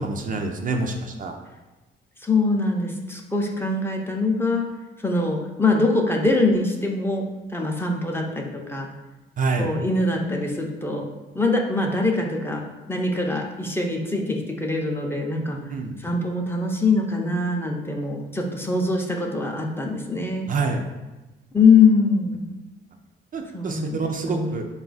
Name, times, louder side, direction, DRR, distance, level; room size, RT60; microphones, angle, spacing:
voice 1, 0.0-1.3 9.4-9.7 15.7-15.9 20.5-20.8 23.3-24.6, right 4 dB, 45° right, 3 dB, 0.4 m, -26 dB
voice 2, 2.2-4.7 5.0-7.2 7.5-8.9 9.6-11.0 11.3-15.6 16.0-20.5 21.5-22.4 23.5-24.6, left 3 dB, 10° left, 1 dB, 0.5 m, -23 dB
4.0 x 2.3 x 3.9 m, 1.1 s
cardioid pair, 90°, 20 cm